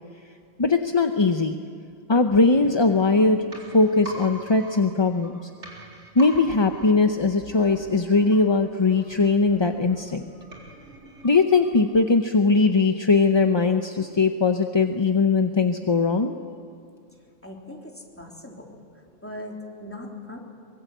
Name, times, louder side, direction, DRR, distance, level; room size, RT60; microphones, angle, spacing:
voice 1, 0.6-1.6 2.1-3.5 3.7-5.5 6.2-10.2 11.2-16.3, left 3 dB, 25° left, 6 dB, 0.7 m, -20 dB
sound 1, 2.5-12.2 12.5-12.6, equal, 70° right, 4.4 m, -44 dB
voice 2, 17.1-20.4, left 1 dB, 10° left, -1 dB, 3.5 m, -40 dB
24.0 x 22.0 x 8.1 m, 2.4 s
omnidirectional pair, 1.3 m